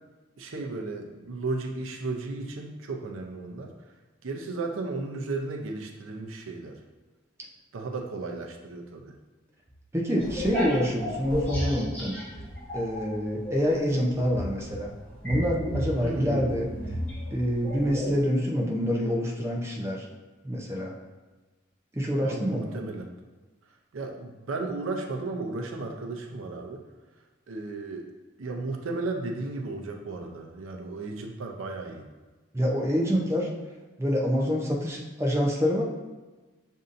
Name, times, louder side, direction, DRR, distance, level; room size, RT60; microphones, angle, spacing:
voice 1, 0.4-3.7 4.2-6.8 7.7-9.2 13.4-13.5 16.0-16.3 22.2-23.1 23.9-26.8 27.5-28.1 28.4-32.1 33.1-33.2, right 3 dB, 85° right, 2 dB, 0.6 m, -34 dB
voice 2, 9.9-12.2 12.7-14.9 15.2-16.7 17.3-20.1 20.4-20.9 21.9-22.8 32.5-33.5 34.0-35.8, equal, 15° right, -2 dB, 0.5 m, -26 dB
sound 1, 10.2-13.1 13.4-18.2, equal, 10° left, 1.2 m, -33 dB
6.6 x 2.7 x 2.5 m, 1.2 s
head